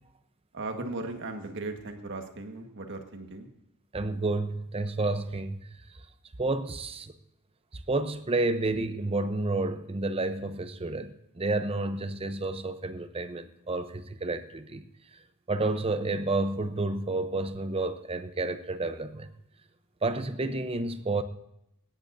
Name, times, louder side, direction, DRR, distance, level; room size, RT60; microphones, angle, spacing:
voice 1, 0.5-3.5, right 2 dB, 55° right, 1.6 m, -37 dB
voice 2, 3.9-6.0 6.4-7.1 7.9-14.8 15.5-19.3 20.0-21.2, right 2 dB, 25° right, 0.7 m, -30 dB
19.5 x 17.0 x 2.7 m
head